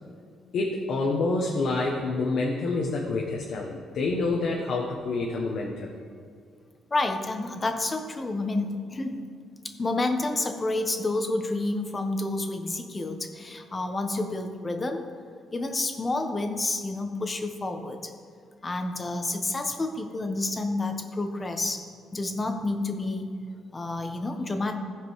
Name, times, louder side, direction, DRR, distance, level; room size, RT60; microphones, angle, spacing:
voice 1, 0.5-5.9, left 3 dB, 70° left, -1 dB, 1.2 m, -27 dB
voice 2, 6.9-9.2 9.8-15.0 15.5-18.1 18.6-21.8 22.1-23.3 23.7-24.7, left 2 dB, 25° left, 6 dB, 1.1 m, -29 dB
15.5 x 5.3 x 4.7 m, 2.2 s
cardioid pair, 90°, 0 cm